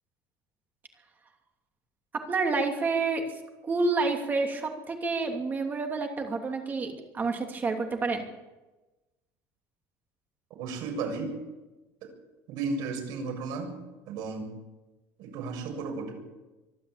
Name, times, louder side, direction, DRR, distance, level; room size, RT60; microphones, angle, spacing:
voice 1, 2.1-3.2 3.6-8.2, right 3 dB, 25° right, 3 dB, 2.9 m, -29 dB
voice 2, 10.6-11.3 12.5-13.7 14.1-14.4 15.2-16.1, right 4 dB, 65° right, 2 dB, 7.4 m, -33 dB
25.0 x 12.0 x 8.7 m, 1.1 s
cardioid pair, 150°, 8 cm